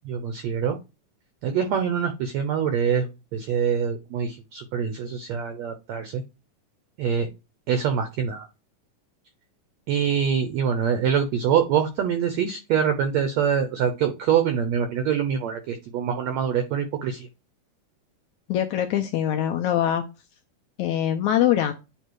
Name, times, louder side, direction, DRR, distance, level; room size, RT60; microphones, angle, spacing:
voice 1, 0.0-0.8 1.4-6.2 7.0-7.3 7.7-8.5 9.9-17.3, right 7 dB, 70° right, 7 dB, 1.7 m, -24 dB
voice 2, 18.5-20.0 20.8-21.7, left 11 dB, 80° left, 5 dB, 1.7 m, -23 dB
9.1 x 3.2 x 4.7 m, 0.27 s
omnidirectional pair, 4.0 m